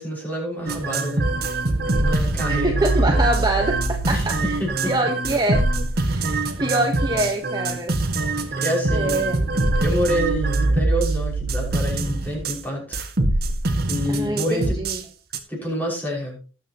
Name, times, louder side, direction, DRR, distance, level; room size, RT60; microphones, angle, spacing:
voice 1, 0.0-1.3 1.7-2.8 3.1-3.3 4.1-4.3 4.6-4.9 8.6-9.2 9.8-13.0 13.9-14.8 15.5-16.4, equal, 10° left, -3 dB, 5.8 m, -27 dB
sound 1, 0.7-12.6 12.9-15.0 15.3-15.4, right 2 dB, 50° right, 1.8 m, -23 dB
voice 2, 2.5-4.6 4.8-5.7 6.1-7.9 8.9-9.5 14.1-15.0, right 1 dB, 20° right, 2 dB, 1.2 m, -25 dB
20.0 x 7.6 x 3.0 m, 0.36 s
head